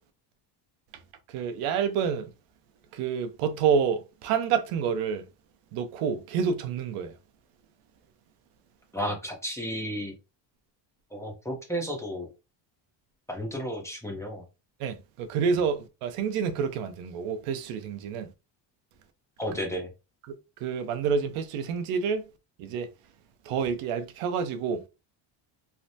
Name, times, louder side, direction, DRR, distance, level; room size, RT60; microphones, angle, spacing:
voice 1, 1.3-2.3 2.9-5.2 5.7-7.1 14.8-18.3 20.3-20.4 20.6-22.3 22.6-22.9 23.4-24.8, right 6 dB, 80° right, 0.7 m, -28 dB
voice 2, 8.9-10.1 11.1-12.3 13.3-14.4 19.4-19.9, equal, 5° left, 0.7 m, -33 dB
3.3 x 2.0 x 2.6 m
cardioid pair, 120°, 50 cm